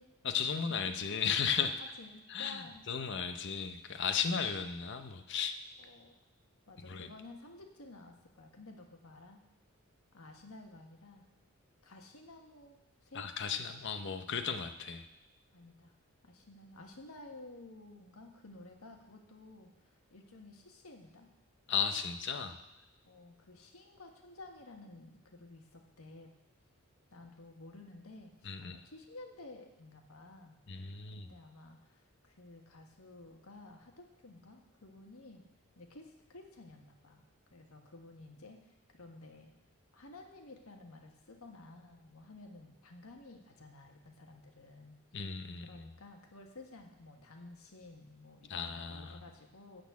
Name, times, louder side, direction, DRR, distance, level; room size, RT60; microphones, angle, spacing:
voice 1, 0.2-1.8 2.3-5.6 6.9-7.1 13.1-15.1 21.7-22.6 28.4-28.8 30.7-31.3 45.1-45.7 48.5-49.2, left 6 dB, 55° left, 9 dB, 0.7 m, -35 dB
voice 2, 1.8-2.8 4.2-4.7 5.8-6.2 6.7-9.4 10.1-11.2 11.8-13.3 15.5-16.0 16.2-21.3 23.0-26.3 27.1-30.6 31.2-35.4 35.7-37.2 37.5-39.5 39.9-45.0 45.6-49.8, left 2 dB, 85° left, 3 dB, 1.5 m, -53 dB
13.0 x 4.3 x 8.3 m, 0.93 s
head